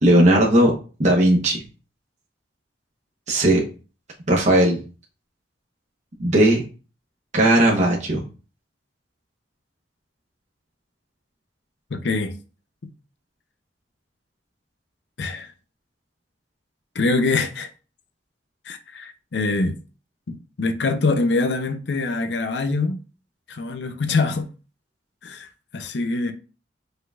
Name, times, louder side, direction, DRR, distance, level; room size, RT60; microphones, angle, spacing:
voice 1, 0.0-0.7 1.0-1.6 3.3-3.6 4.3-4.8 6.2-6.6 7.3-8.2, right 1 dB, 40° right, 1.0 m, -17 dB
voice 2, 11.9-12.4 15.2-15.5 16.9-17.7 18.7-19.8 20.3-23.0 23.5-24.5 25.2-25.5 25.7-26.3, left 3 dB, 70° left, 0.6 m, -24 dB
5.2 x 3.9 x 2.4 m
head